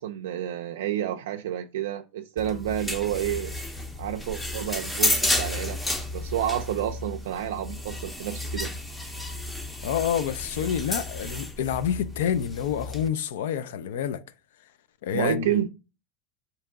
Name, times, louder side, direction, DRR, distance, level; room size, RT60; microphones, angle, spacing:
voice 1, 0.0-3.5 4.0-5.8 6.1-8.7 15.1-15.7, right 11 dB, 85° right, 0.3 m, -29 dB
sound 1, 2.4-13.1, left 1 dB, 10° left, 0.5 m, -32 dB
voice 2, 9.8-14.2 15.0-15.5, left 9 dB, 80° left, 0.3 m, -28 dB
3.6 x 2.9 x 3.4 m
supercardioid pair, 130°, 0 cm